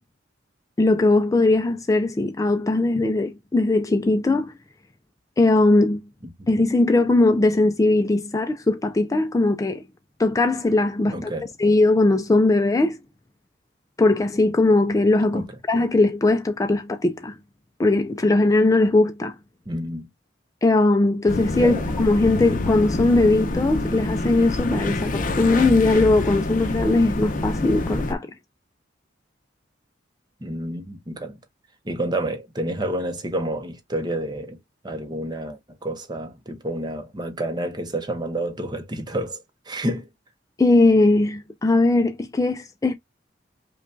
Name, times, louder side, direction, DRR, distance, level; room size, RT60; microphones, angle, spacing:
voice 1, 0.8-4.5 5.4-6.0 6.5-9.8 10.2-11.3 11.6-13.0 14.0-17.3 17.8-19.3 20.6-28.3 40.6-42.9, left 2 dB, 15° left, 0.3 m, -19 dB
voice 2, 11.1-11.5 15.3-15.6 19.7-20.1 21.5-21.9 30.4-31.4 31.8-34.6 34.8-40.1, right 1 dB, 20° right, 0.7 m, -29 dB
sound 1, 21.3-28.1, left 2 dB, 45° left, 0.7 m, -27 dB
5.4 x 2.2 x 2.5 m
head